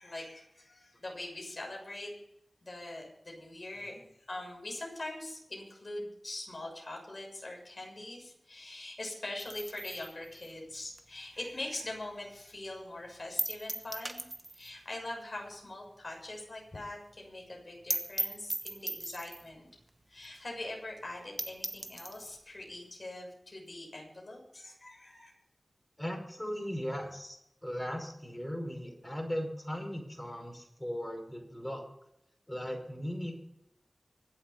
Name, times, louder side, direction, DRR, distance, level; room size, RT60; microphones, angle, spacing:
voice 1, 0.0-2.1 2.6-14.3 14.5-19.7 20.1-25.3, left 2 dB, 45° left, -1 dB, 6.7 m, -43 dB
sound 1, 9.4-12.0 12.3-12.4 12.8-12.9 13.4-14.8 15.1-15.2 15.5-15.6 15.9-16.0 16.3-16.4 16.7-16.8 17.1-17.2 17.5-17.6 17.9-19.5 20.2-20.3 20.7-20.8 21.1-21.2 21.4-22.4, right 1 dB, 25° right, 1.1 m, -38 dB
voice 2, 26.0-27.4 27.6-31.8 32.5-33.3, equal, 15° left, 1 dB, 5.4 m, -38 dB
24.5 x 8.1 x 5.5 m, 0.80 s
wide cardioid pair, 75°, 0 cm